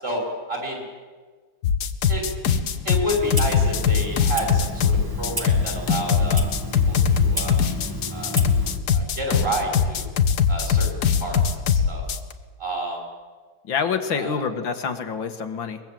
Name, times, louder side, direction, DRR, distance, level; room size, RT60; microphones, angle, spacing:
voice 1, 0.5-0.8 2.1-2.3 2.8-6.4 6.9-7.6 8.1-8.4 8.9-10.1 10.5-10.9 11.2-12.0 12.6-13.0 14.1-14.4, equal, 30° right, 0 dB, 6.3 m, -29 dB
sound 1, 1.6-12.3, left 7 dB, 60° left, 1.5 m, -21 dB
Clock, 3.2-8.8, equal, 10° right, 2.2 m, -33 dB
voice 2, 13.7-15.8, left 6 dB, 85° left, 5 dB, 2.3 m, -26 dB
23.0 x 22.0 x 7.7 m, 1.4 s
omnidirectional pair, 2.1 m